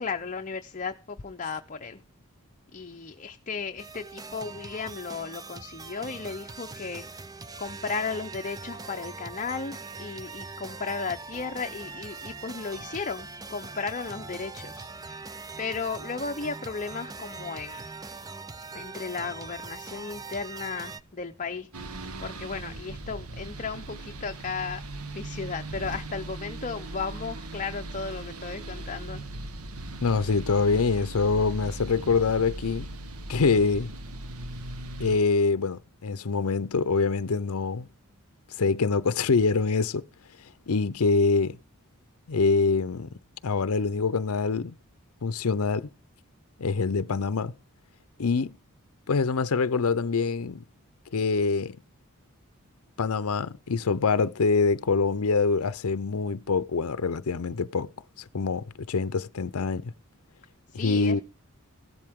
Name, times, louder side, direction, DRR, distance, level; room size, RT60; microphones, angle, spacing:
voice 1, 0.0-2.0 2.7-7.1 7.6-15.2 15.6-18.0 18.7-21.7 22.2-24.8 25.1-29.3 60.7-61.2, left 5 dB, 35° left, 0.7 m, -35 dB
sound 1, 3.8-21.0, right 4 dB, 15° right, 0.6 m, -41 dB
sound 2, 21.7-35.2, right 1 dB, 75° right, 1.2 m, -38 dB
voice 2, 30.0-32.9 33.3-33.9 35.0-37.9 38.6-40.0 40.7-41.6 42.3-43.1 43.4-44.8 45.2-45.9 46.6-47.5 48.2-48.5 49.1-50.6 51.1-51.8 53.0-57.9 58.3-59.9 60.7-61.2, left 4 dB, 75° left, 0.6 m, -25 dB
15.5 x 12.5 x 3.6 m
head